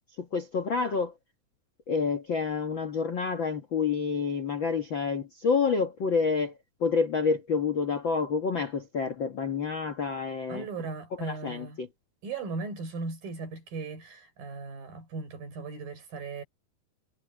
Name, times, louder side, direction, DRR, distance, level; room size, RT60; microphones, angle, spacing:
voice 1, 0.2-1.1 1.9-6.5 6.8-10.7 11.1-11.9, left 5 dB, 70° left, 1.1 m, -28 dB
voice 2, 10.5-11.8 12.2-16.4, right 4 dB, 60° right, 7.0 m, -37 dB
omnidirectional pair, 4.6 m